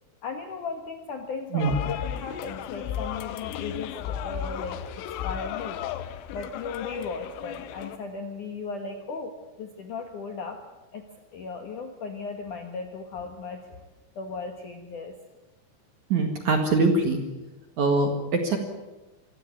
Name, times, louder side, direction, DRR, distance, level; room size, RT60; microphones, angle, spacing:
voice 1, 0.2-5.8 6.3-10.6 10.9-13.8 14.2-15.2, left 4 dB, 65° left, 5 dB, 2.1 m, -36 dB
sound 1, 1.6-8.0, left 10 dB, 90° left, 3.7 m, -34 dB
voice 2, 16.1-17.2 17.8-18.6, right 3 dB, 50° right, 5 dB, 2.5 m, -23 dB
25.0 x 15.5 x 9.7 m, 1.1 s
omnidirectional pair, 5.7 m